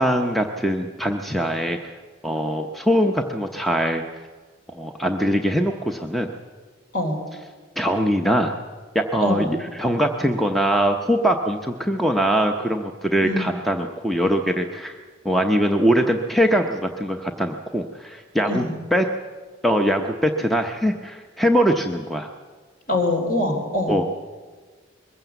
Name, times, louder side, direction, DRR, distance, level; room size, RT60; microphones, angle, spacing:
voice 1, 0.0-2.0 2.2-4.0 4.7-6.3 7.8-8.5 8.9-14.9 15.2-18.6 18.9-19.1 19.6-22.3 23.9-24.1, equal, ahead, 4 dB, 0.7 m, -22 dB
voice 2, 13.2-13.6 18.5-18.7 22.9-24.0, left 1 dB, 45° left, 3 dB, 3.8 m, -24 dB
21.5 x 15.5 x 8.0 m, 1.5 s
head